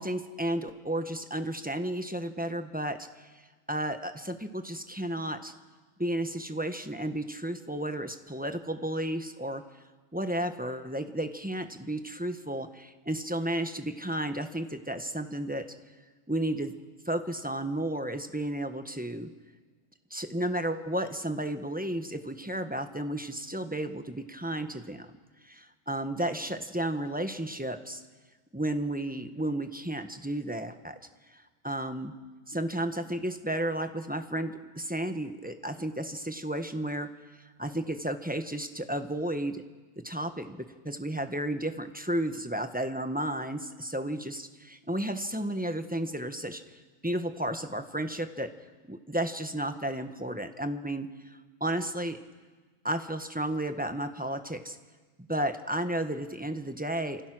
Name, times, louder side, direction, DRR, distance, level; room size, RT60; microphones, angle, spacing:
voice 1, 0.0-3.1 3.3-3.4 3.7-5.5 6.0-9.6 10.1-15.7 16.3-16.7 17.1-19.3 20.1-25.1 25.4-28.0 28.5-31.0 31.3-32.1 32.5-37.1 37.4-39.6 40.0-46.6 47.0-48.5 48.9-52.2 52.8-54.8 55.3-57.2, right 1 dB, 5° right, 7 dB, 1.2 m, -33 dB
30.0 x 27.0 x 6.2 m, 1.4 s
omnidirectional pair, 1.4 m